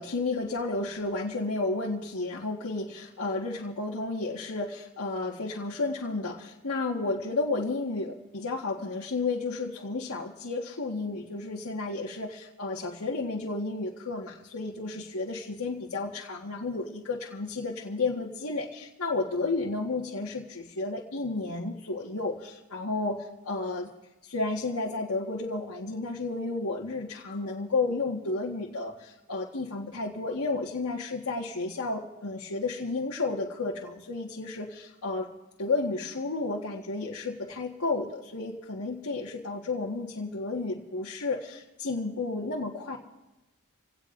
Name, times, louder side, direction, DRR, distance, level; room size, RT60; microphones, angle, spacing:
voice 1, 0.0-23.9 24.2-35.3 35.6-43.0, left 3 dB, 90° left, -4 dB, 1.6 m, -32 dB
27.5 x 17.5 x 2.6 m, 1.0 s
head